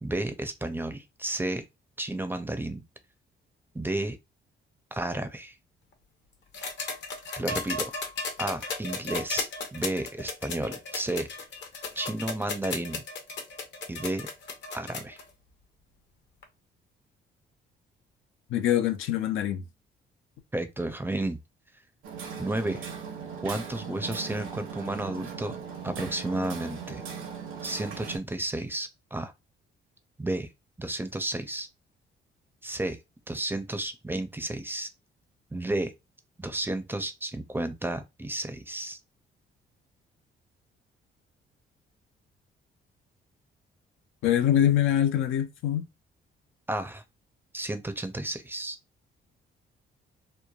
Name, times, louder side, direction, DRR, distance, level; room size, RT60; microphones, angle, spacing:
voice 1, 0.0-1.6 2.0-2.8 3.7-4.2 4.9-5.5 7.4-7.9 8.4-11.3 12.0-13.0 13.9-14.3 14.7-15.2 20.5-21.4 22.4-22.9 23.4-25.6 25.8-27.0 27.6-29.3 30.2-30.5 30.8-31.7 32.6-33.0 33.3-34.9 35.5-35.9 36.4-39.0 46.7-47.0 47.5-48.8, right 1 dB, 10° right, 0.4 m, -32 dB
sound 1, 6.5-15.2 16.4-16.5, left 4 dB, 65° left, 0.8 m, -35 dB
voice 2, 18.5-19.6 44.2-45.8, left 11 dB, 85° left, 0.5 m, -24 dB
Hammer, 22.0-28.2, right 6 dB, 80° right, 0.8 m, -39 dB
3.1 x 2.1 x 2.3 m
cardioid pair, 90°, 20 cm